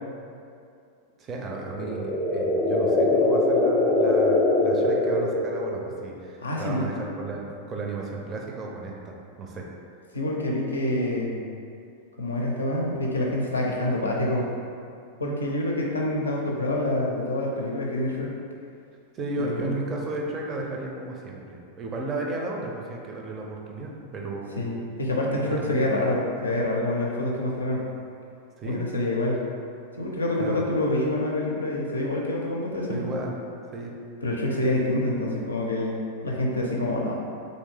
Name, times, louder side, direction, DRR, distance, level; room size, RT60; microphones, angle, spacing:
voice 1, 1.2-9.7 19.1-24.7 25.5-25.9 28.6-28.8 30.4-30.7 32.9-33.4 33.7-34.0, right 2 dB, 25° right, 0 dB, 0.5 m, -34 dB
sound 1, 1.5-5.9, left 2 dB, 30° left, 0.6 m, -22 dB
voice 2, 6.4-6.9 10.1-11.4 12.2-14.5 15.2-18.3 19.4-19.8 24.6-27.8 28.6-29.4 30.0-33.2 34.2-37.2, left 1 dB, 75° left, -2 dB, 0.5 m, -27 dB
3.1 x 2.6 x 3.3 m, 2.5 s
figure-of-eight pair, 90°, 0 cm